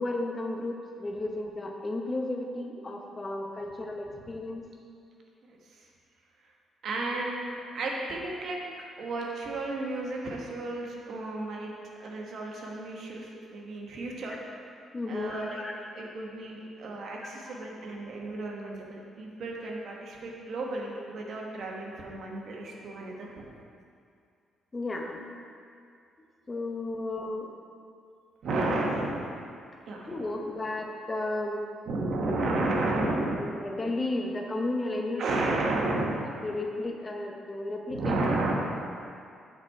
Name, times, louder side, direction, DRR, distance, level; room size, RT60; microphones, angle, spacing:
voice 1, 0.0-4.6 14.9-15.8 17.2-17.6 24.7-25.3 26.5-27.5 30.1-31.6 33.3-35.4 36.4-38.1, left 2 dB, 25° left, 2 dB, 0.8 m, -33 dB
voice 2, 6.8-8.6 9.0-11.7 12.0-14.4 15.1-15.6 15.9-23.4 28.4-29.2 29.9-30.3 31.9-33.4 35.2-36.2 37.9-38.5, right 2 dB, 65° right, -1 dB, 1.2 m, -32 dB
7.5 x 4.2 x 4.7 m, 2.4 s
cardioid pair, 90°, 0 cm